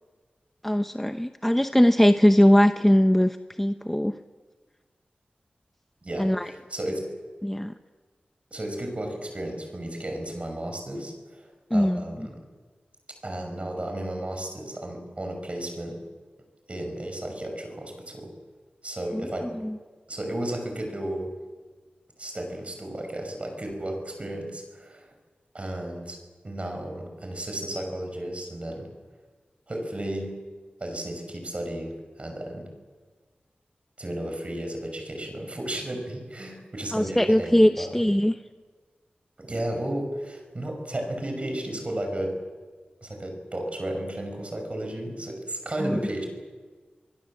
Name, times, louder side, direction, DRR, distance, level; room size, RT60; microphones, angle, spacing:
voice 1, 0.6-4.1 6.2-6.5 7.4-7.7 11.7-12.0 19.1-19.2 19.6-19.8 36.9-38.4 45.8-46.0, equal, 5° left, 8 dB, 0.8 m, -20 dB
voice 2, 6.0-7.1 8.5-12.4 13.2-16.0 16.7-18.3 18.8-19.5 20.1-21.3 22.2-25.1 25.5-26.2 26.4-28.9 29.7-30.4 30.8-32.7 34.0-38.0 39.4-42.4 43.0-46.2, right 1 dB, 40° right, 4 dB, 6.1 m, -33 dB
26.0 x 20.5 x 7.5 m, 1.4 s
wide cardioid pair, 80°, 3 cm